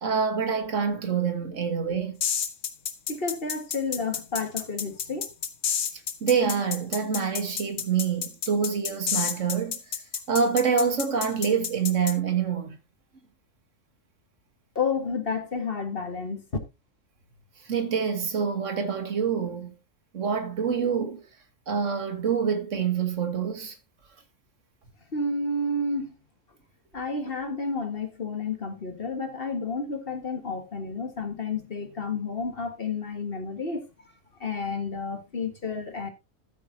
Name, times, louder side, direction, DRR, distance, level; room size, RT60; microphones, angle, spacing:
voice 1, 0.0-2.2 6.2-10.0 10.3-12.8 17.7-19.7 20.1-21.2 21.7-23.7, right 6 dB, 70° right, 1.8 m, -26 dB
sound 1, 2.2-12.1, left 8 dB, 80° left, 1.6 m, -30 dB
voice 2, 3.1-5.3 14.8-16.5 25.1-26.2 26.9-34.1 34.4-36.1, left 3 dB, 45° left, 1.8 m, -31 dB
13.5 x 8.4 x 2.7 m
omnidirectional pair, 1.4 m